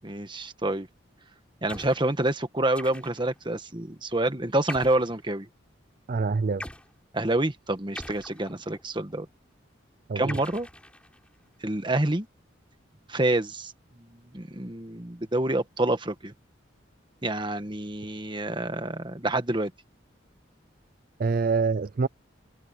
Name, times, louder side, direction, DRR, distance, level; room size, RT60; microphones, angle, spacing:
voice 1, 0.0-0.9 1.6-5.5 7.1-9.3 10.1-10.7 11.6-12.3 13.1-13.7 14.3-16.3 17.2-19.7, right 1 dB, 25° right, 1.5 m, -27 dB
sound 1, 1.7-2.1 2.7-3.4 4.7-5.2 6.6-6.9 7.9-8.8 10.3-11.3, left 1 dB, 5° left, 5.0 m, -41 dB
voice 2, 6.1-6.6 10.1-10.4 21.2-22.1, right 4 dB, 45° right, 0.4 m, -25 dB
head